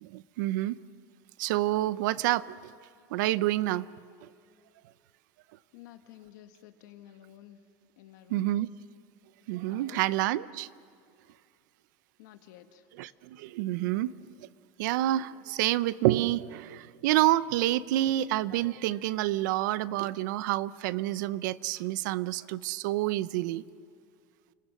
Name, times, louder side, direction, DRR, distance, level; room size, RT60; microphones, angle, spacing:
voice 1, 0.0-0.7 1.4-2.6 3.1-3.9 8.3-8.7 9.5-10.7 13.0-14.1 14.8-23.6, right 15 dB, 80° right, 17 dB, 0.6 m, -28 dB
voice 2, 5.7-7.6 8.0-8.5 9.7-10.0 12.2-12.9, left 12 dB, 85° left, 7 dB, 1.9 m, -51 dB
29.0 x 25.5 x 6.5 m, 2.3 s
cardioid pair, 175°, 10 cm